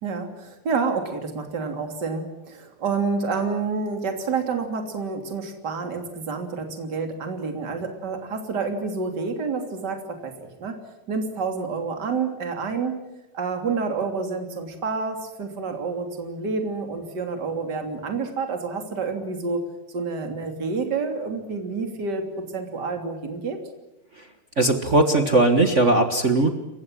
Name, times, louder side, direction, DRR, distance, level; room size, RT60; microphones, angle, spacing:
voice 1, 0.0-10.8 11.1-13.0 13.3-19.6 19.9-23.6, right 4 dB, 30° right, 5 dB, 3.3 m, -28 dB
voice 2, 24.6-26.5, right 2 dB, 65° right, 6 dB, 0.7 m, -19 dB
29.5 x 15.5 x 9.9 m, 0.97 s
omnidirectional pair, 3.9 m